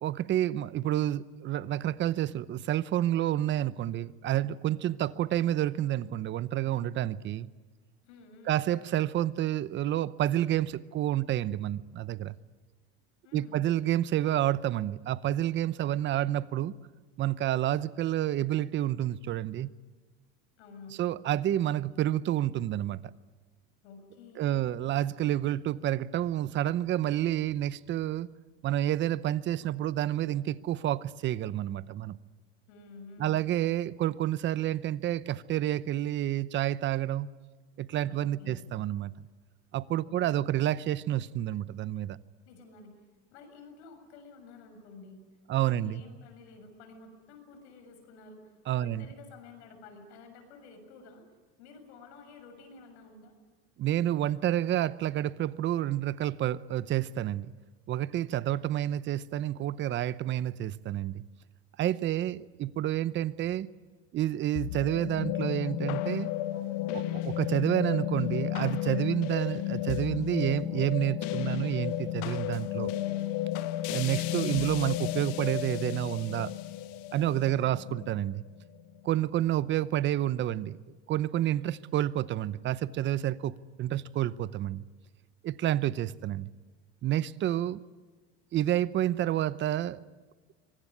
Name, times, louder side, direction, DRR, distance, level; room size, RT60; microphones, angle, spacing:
voice 1, 0.0-7.5 8.5-12.3 13.3-16.7 17.2-19.7 21.0-23.0 24.4-28.3 28.6-32.2 33.2-37.3 37.8-39.1 39.7-42.2 45.5-46.0 48.7-49.0 53.8-57.5 57.9-61.2 61.8-63.7 64.1-66.3 66.9-72.9 73.9-76.5 77.1-78.4 79.0-80.8 81.1-83.5 83.8-84.9 85.4-86.5 87.0-87.8 88.5-90.0, right 12 dB, 35° right, 0.8 m, -29 dB
voice 2, 8.0-8.7 13.2-13.6 20.6-21.0 23.8-24.7 32.7-33.4 38.0-38.7 40.1-40.6 42.5-43.0 43.3-45.3 45.5-51.2 51.6-53.3 77.4-77.8, left 4 dB, 85° left, 7.0 m, -51 dB
sound 1, 64.5-79.0, left 14 dB, 65° left, 1.5 m, -33 dB
24.5 x 19.5 x 9.9 m
supercardioid pair, 130°, 33 cm